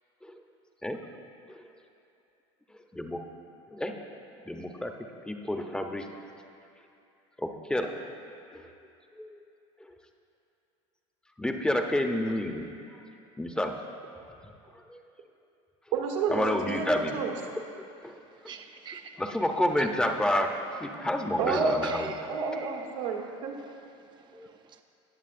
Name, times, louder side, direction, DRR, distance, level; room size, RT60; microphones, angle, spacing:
voice 1, 3.7-4.0 4.4-4.9 5.3-6.1 7.4-7.9 8.5-8.7 9.2-9.4 11.4-12.7 13.4-13.7 14.7-15.0 16.3-17.2 17.8-18.2 18.4-18.5 19.2-22.1 24.3-24.5, left 1 dB, 5° left, 4 dB, 0.7 m, -30 dB
voice 2, 15.9-17.3 21.4-21.8 22.3-23.5, right 5 dB, 80° right, 0 dB, 1.5 m, -30 dB
voice 3, 18.1-19.2 19.8-19.9 21.5-22.8 23.6-23.7 24.1-24.8, right 7 dB, 30° right, 6 dB, 0.5 m, -46 dB
18.5 x 7.1 x 2.6 m, 2.6 s
supercardioid pair, 105°, 16 cm